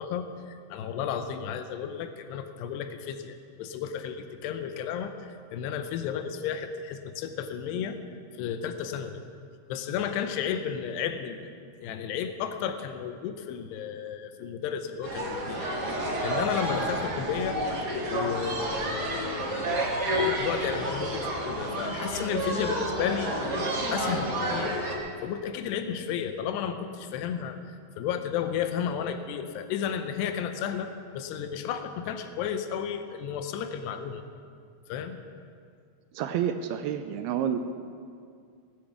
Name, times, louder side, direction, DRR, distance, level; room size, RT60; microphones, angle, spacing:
voice 1, 0.0-8.0 8.3-9.2 9.7-11.4 11.8-15.7 16.2-17.6 18.1-19.9 20.1-23.3 23.9-24.7 25.2-27.6 28.0-34.2 34.9-35.2, left 8 dB, 90° left, 8 dB, 2.9 m, -33 dB
sound 1, 15.0-24.9, right 1 dB, 40° right, 1.6 m, -30 dB
voice 2, 36.1-37.6, right 9 dB, 80° right, 8 dB, 2.4 m, -29 dB
19.0 x 8.8 x 7.1 m, 2.2 s
omnidirectional pair, 4.7 m